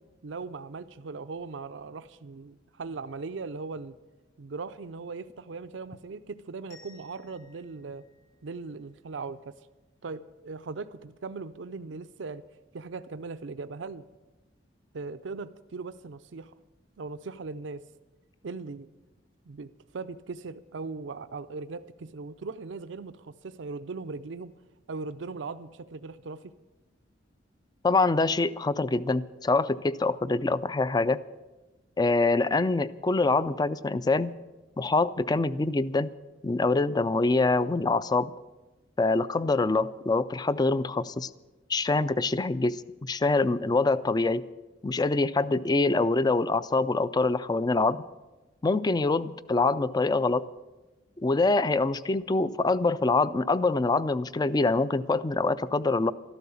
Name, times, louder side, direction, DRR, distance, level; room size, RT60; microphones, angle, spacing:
voice 1, 0.2-4.0 4.4-8.1 8.4-9.5 10.0-12.4 12.7-14.0 14.9-16.5 17.0-17.8 18.4-18.9 19.5-24.6 24.9-26.5, right 4 dB, 75° right, 12 dB, 0.5 m, -39 dB
sound 1, 6.7-9.5, left 4 dB, 45° left, 5.1 m, -59 dB
voice 2, 27.8-31.2 32.0-34.3 34.8-36.1 36.4-38.3 39.0-41.3 41.7-44.5 44.8-48.0 48.6-50.5 51.2-56.1, left 3 dB, 20° left, 17 dB, 0.4 m, -25 dB
13.0 x 12.0 x 7.0 m, 1.1 s
head